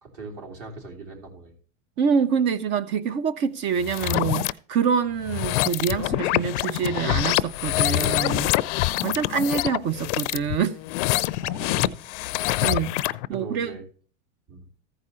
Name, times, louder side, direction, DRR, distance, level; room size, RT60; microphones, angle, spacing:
voice 1, 0.0-1.5 9.0-9.3 11.4-11.9 13.3-13.8 14.5-14.7, right 3 dB, 50° right, 3.3 m, -39 dB
voice 2, 2.0-8.5 9.0-10.8 12.6-13.8, right 7 dB, 30° right, 0.4 m, -26 dB
sound 1, 3.8-4.5 5.2-13.3, left 18 dB, 65° left, 0.5 m, -25 dB
14.5 x 4.9 x 4.2 m
supercardioid pair, 140°, 39 cm